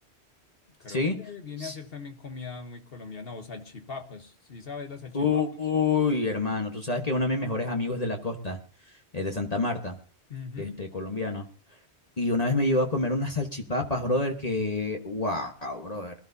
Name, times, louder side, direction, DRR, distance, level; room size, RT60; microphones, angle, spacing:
voice 1, 0.8-5.4 10.3-10.9, left 5 dB, 60° left, 1.4 m, -40 dB
voice 2, 5.1-8.6 9.1-10.0 10.6-11.5 12.2-16.1, left 3 dB, 35° left, 1.4 m, -27 dB
22.0 x 13.0 x 2.7 m
omnidirectional pair, 1.1 m